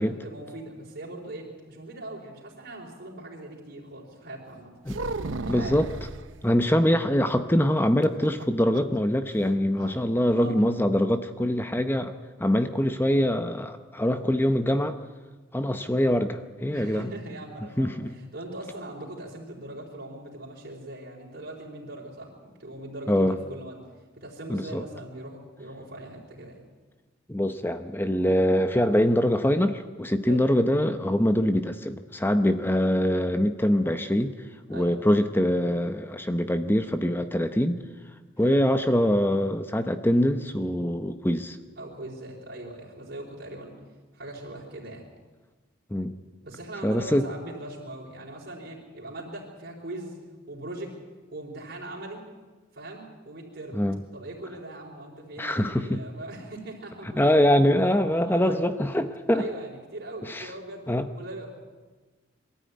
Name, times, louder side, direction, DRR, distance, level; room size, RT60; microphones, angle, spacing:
voice 1, 0.0-4.7 5.4-5.8 10.2-10.6 16.7-23.8 24.2-26.6 30.3-30.4 34.7-34.9 38.4-38.6 41.8-43.8 44.1-45.1 46.4-50.2 50.5-51.0 51.3-52.3 52.7-53.8 54.1-57.3 58.1-58.6 59.3-60.9 61.1-61.5, right 1 dB, 55° right, -6 dB, 4.4 m, -40 dB
sound 1, 4.9-6.3 8.0-9.0 9.3-9.4 9.7-10.0, right 3 dB, 75° right, 0.8 m, -34 dB
voice 2, 5.5-5.9 6.4-12.1 12.4-15.0 15.5-17.1 17.8-18.1 23.1-23.4 24.5-24.8 27.3-34.4 34.7-37.8 38.4-41.6 45.9-46.1 46.8-47.3 53.7-54.0 55.4-56.0 57.2-59.4 60.2-60.5 60.9-61.1, equal, 10° left, 9 dB, 0.8 m, -24 dB
22.5 x 14.0 x 9.5 m, 1.3 s
head